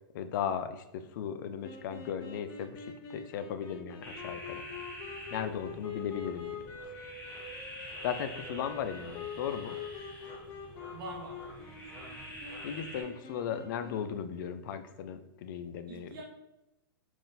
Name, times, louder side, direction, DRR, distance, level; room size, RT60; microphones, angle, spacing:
voice 1, 0.1-4.6 5.3-6.7 8.0-9.8 12.6-16.1, left 8 dB, 60° left, 10 dB, 0.4 m, -37 dB
sound 1, 1.6-14.2, left 5 dB, 35° left, 1.0 m, -45 dB
sound 2, 4.0-13.0, equal, 10° left, 1.1 m, -47 dB
voice 2, 10.9-12.4 15.9-16.2, right 3 dB, 70° right, 2 dB, 0.8 m, -47 dB
3.7 x 2.6 x 3.9 m, 0.93 s
hypercardioid pair, 130°, 12 cm